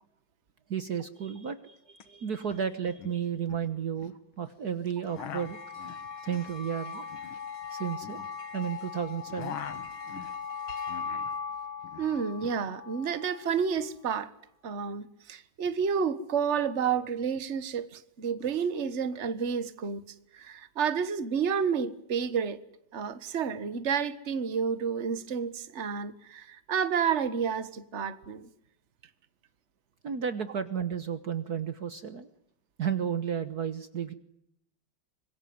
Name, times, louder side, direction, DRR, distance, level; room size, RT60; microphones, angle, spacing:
voice 1, 0.7-5.6 6.2-7.1 7.7-8.2 8.5-9.6 30.0-32.3 32.8-34.1, right 7 dB, 55° right, 12 dB, 1.6 m, -33 dB
sound 1, 2.0-2.1 2.3-2.7 3.0-4.2 4.9-8.8 9.1-11.4 11.6-12.6, left 8 dB, 80° left, 2.2 m, -44 dB
sound 2, 5.1-13.7, left 6 dB, 60° left, 3.3 m, -39 dB
voice 2, 12.0-14.3 14.6-20.0 20.3-22.6 22.9-28.5, right 6 dB, 35° right, 13 dB, 1.6 m, -30 dB
25.5 x 21.5 x 9.5 m, 0.75 s
omnidirectional pair, 2.2 m